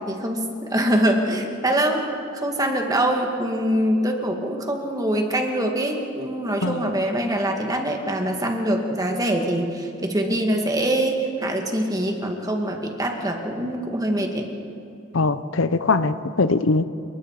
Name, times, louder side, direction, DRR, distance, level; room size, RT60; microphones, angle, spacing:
voice 1, 0.1-2.1 2.4-14.5, right 1 dB, 20° right, 2 dB, 2.2 m, -24 dB
voice 2, 15.1-16.8, left 3 dB, 75° left, 13 dB, 0.7 m, -21 dB
29.0 x 20.5 x 4.9 m, 2.8 s
head